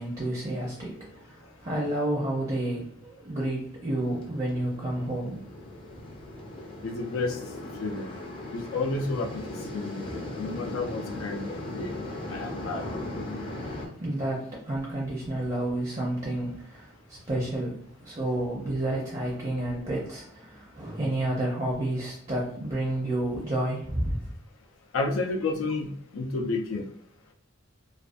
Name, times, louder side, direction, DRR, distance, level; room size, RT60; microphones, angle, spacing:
voice 1, 0.0-5.5 13.6-24.3, right 1 dB, 30° right, 0.5 m, -30 dB
sound 1, 4.0-13.9, left 1 dB, 25° left, 0.4 m, -38 dB
voice 2, 6.8-7.4 7.8-8.2 8.5-10.1 10.4-11.9 12.3-12.8 24.9-26.9, left 3 dB, 90° left, 0.4 m, -31 dB
2.4 x 2.2 x 2.5 m
head